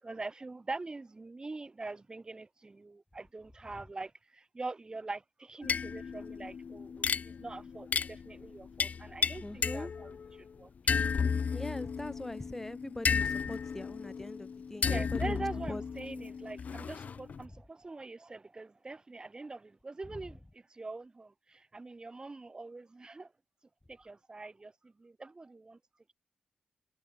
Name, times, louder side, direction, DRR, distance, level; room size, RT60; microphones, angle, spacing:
voice 1, 0.0-10.7 14.8-23.3 23.9-25.8, right 3 dB, 30° right, 3.4 m, -43 dB
sound 1, 5.6-10.4 10.9-17.4, left 6 dB, 60° left, 1.1 m, -34 dB
voice 2, 9.4-9.9 11.5-15.8, left 1 dB, 10° left, 1.0 m, -42 dB
wide cardioid pair, 95°, 3 cm